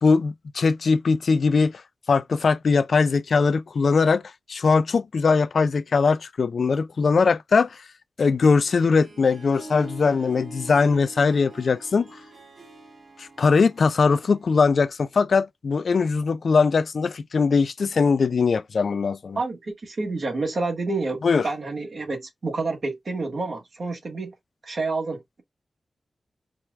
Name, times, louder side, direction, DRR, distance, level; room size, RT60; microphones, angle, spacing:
voice 1, 0.0-1.8 2.1-4.2 4.5-7.8 8.2-12.1 13.2-19.4 21.2-21.4, left 4 dB, 65° left, 0.4 m, -21 dB
Harp, 8.4-14.9, right 2 dB, 45° right, 2.0 m, -45 dB
voice 2, 19.4-24.3 24.6-25.4, right 3 dB, 60° right, 1.4 m, -29 dB
4.5 x 2.3 x 3.4 m
wide cardioid pair, 135°, 0 cm